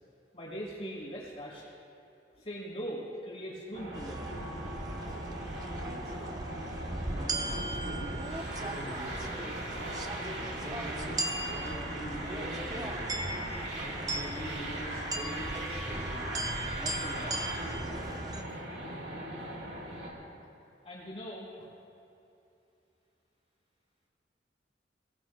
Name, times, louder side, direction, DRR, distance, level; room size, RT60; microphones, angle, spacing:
voice 1, 0.3-1.7 2.4-4.6 20.8-21.7, equal, 35° left, -5 dB, 4.3 m, -41 dB
sound 1, 3.7-20.1, right 1 dB, 70° right, 3.9 m, -39 dB
sound 2, 3.9-18.4, right 2 dB, 20° right, 0.8 m, -38 dB
voice 2, 5.1-5.4 5.9-6.4 7.1-8.1 8.5-9.9 10.5-13.3 13.7-16.3 16.8-18.5, equal, 35° right, -4 dB, 3.5 m, -44 dB
26.0 x 18.5 x 2.3 m, 2.8 s
head